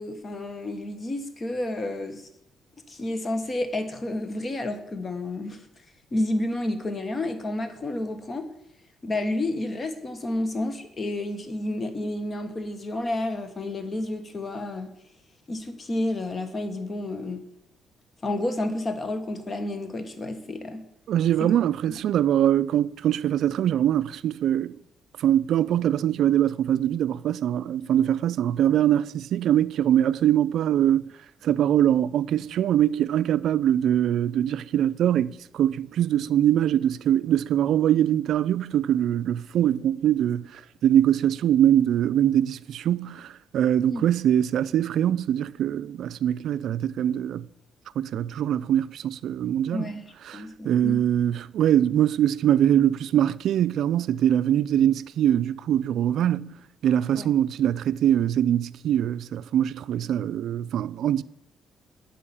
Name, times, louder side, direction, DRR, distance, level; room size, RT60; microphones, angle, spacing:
voice 1, 0.0-2.3 2.9-5.7 6.1-8.5 9.0-14.9 15.5-17.4 18.2-20.9 21.4-21.6 43.9-44.0 49.7-51.1 57.1-57.3, left 1 dB, 35° left, 1.3 m, -30 dB
voice 2, 21.1-24.8 25.2-31.1 31.4-47.5 48.0-49.9 50.3-56.6 56.8-61.2, right 10 dB, 75° right, 0.3 m, -23 dB
8.5 x 5.5 x 7.2 m
cardioid pair, 90°, 0 cm